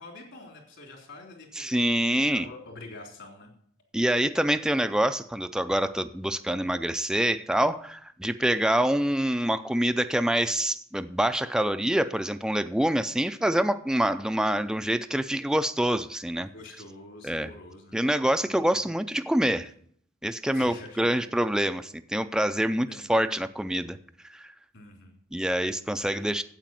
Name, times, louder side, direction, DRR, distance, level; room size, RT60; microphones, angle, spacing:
voice 1, 0.0-1.7 2.2-3.5 16.5-18.0 18.4-18.8 20.5-21.3 22.9-23.1 24.7-25.2 26.0-26.4, left 2 dB, 65° left, 2 dB, 3.3 m, -46 dB
voice 2, 1.6-2.5 3.9-16.5 17.2-17.5 17.9-19.7 20.2-24.0 24.3-24.5 25.3-26.4, right 1 dB, 5° right, 10 dB, 0.4 m, -26 dB
9.0 x 8.2 x 7.5 m, 0.64 s
head